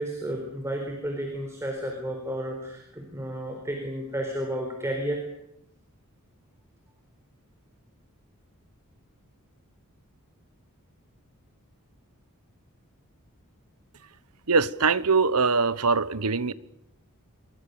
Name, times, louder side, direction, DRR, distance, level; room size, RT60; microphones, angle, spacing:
voice 1, 0.0-5.2, right 1 dB, 15° right, 4.4 m, -32 dB
voice 2, 14.5-16.5, right 4 dB, 85° right, 1.2 m, -22 dB
27.5 x 24.0 x 7.0 m
head